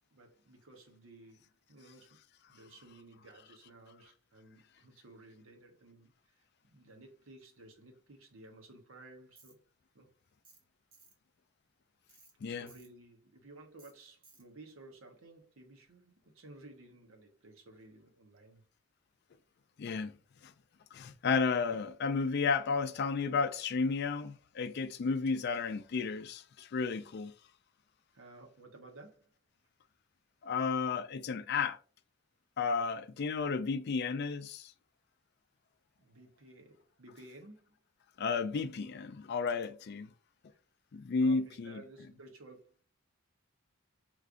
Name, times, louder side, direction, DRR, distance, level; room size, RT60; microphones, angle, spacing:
voice 1, 0.1-6.5 6.7-9.6 9.9-10.1 12.4-18.6 28.1-29.3 36.0-37.8 41.2-42.8, right 2 dB, 75° right, 1.0 m, -55 dB
Tools, 9.4-9.5 10.4-10.6 10.9-11.1 12.1-12.3 12.7-12.9 13.8-13.9 14.2-14.4, right 3 dB, 45° right, 1.5 m, -60 dB
voice 2, 19.8-20.1 20.4-20.5 20.9-27.3 30.4-31.8 32.6-34.7 38.2-40.1 40.9-41.8, left 4 dB, 50° left, 0.4 m, -32 dB
4.9 x 3.2 x 2.5 m
head